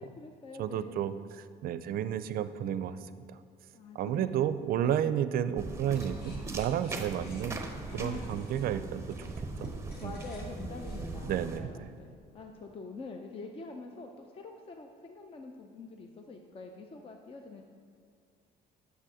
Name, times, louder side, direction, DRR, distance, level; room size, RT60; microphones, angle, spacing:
voice 1, 0.0-0.9 3.7-4.4 4.8-5.0 7.9-8.4 10.0-17.6, left 3 dB, 35° left, 4 dB, 0.6 m, -45 dB
voice 2, 0.6-3.0 3.3-3.4 3.9-9.3 9.6-9.7 10.0-10.1 11.2-11.9, right 10 dB, 60° right, 13 dB, 0.4 m, -32 dB
sound 1, 5.6-11.6, right 3 dB, 15° right, 0.8 m, -40 dB
sound 2, 5.9-12.1, left 2 dB, 70° left, 1.5 m, -57 dB
7.5 x 6.7 x 4.9 m, 2.4 s
cardioid pair, 110°, 17 cm